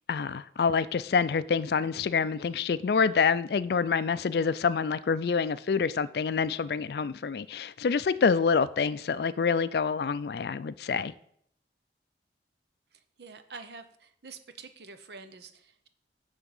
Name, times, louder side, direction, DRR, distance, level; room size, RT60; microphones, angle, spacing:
voice 1, 0.1-11.1, left 5 dB, 60° left, 15 dB, 0.3 m, -27 dB
voice 2, 12.9-15.9, right 4 dB, 65° right, 9 dB, 0.8 m, -47 dB
9.6 x 3.6 x 7.1 m, 0.70 s
head